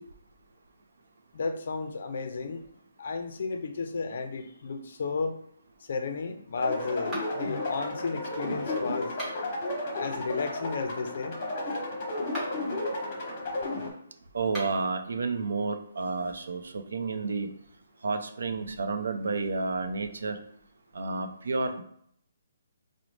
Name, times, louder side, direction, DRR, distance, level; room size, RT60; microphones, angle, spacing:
voice 1, 1.3-2.6 3.0-5.4 5.9-9.1 9.9-11.4, left 4 dB, 50° left, 7 dB, 0.4 m, -33 dB
sound 1, 6.6-13.9, left 2 dB, 25° left, 0.9 m, -33 dB
sound 2, 7.1-7.6 9.0-9.6 12.2-12.7 14.4-14.9, right 1 dB, 5° right, 0.9 m, -40 dB
voice 2, 14.3-17.5 18.0-20.4 20.9-21.8, right 3 dB, 75° right, 7 dB, 0.5 m, -30 dB
5.1 x 2.0 x 3.1 m, 0.67 s
hypercardioid pair, 175°, 0 cm